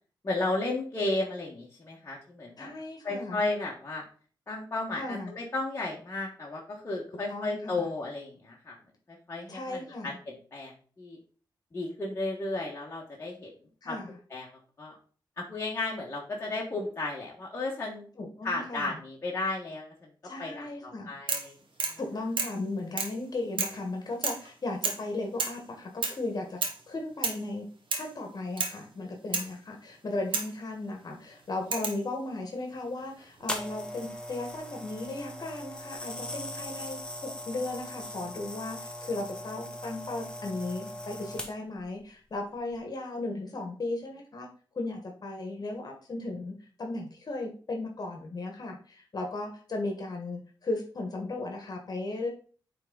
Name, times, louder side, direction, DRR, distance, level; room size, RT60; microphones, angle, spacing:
voice 1, 0.2-2.7 3.0-4.0 4.5-8.8 9.3-11.2 11.7-13.5 13.9-14.0 14.3-14.9 15.4-18.0 18.4-19.9 20.4-21.5 21.9-22.0, left 2 dB, 30° left, -3 dB, 1.3 m, -34 dB
voice 2, 2.6-3.4 5.0-5.3 7.3-7.8 9.5-10.2 13.8-14.2 18.1-19.0 20.2-21.1 22.0-26.6 26.9-27.7 28.0-44.5 44.7-52.3, left 2 dB, 50° left, 3 dB, 1.3 m, -36 dB
sound 1, 21.3-21.5 21.8-22.0 22.4-22.6 23.0-23.2 23.6-23.8 24.2-24.5 24.8-25.0 25.4-25.6 26.0-26.2 26.6-26.8 27.2-27.5 27.9-28.1 28.6-28.8 29.3-29.5 30.3-30.6 31.7-32.0 33.2-33.7, right 4 dB, 90° right, 1.2 m, -31 dB
sound 2, 33.5-41.8 42.5-42.8, left 1 dB, 10° left, 1.0 m, -40 dB
8.8 x 3.5 x 3.8 m, 0.41 s
wide cardioid pair, 115°, 8 cm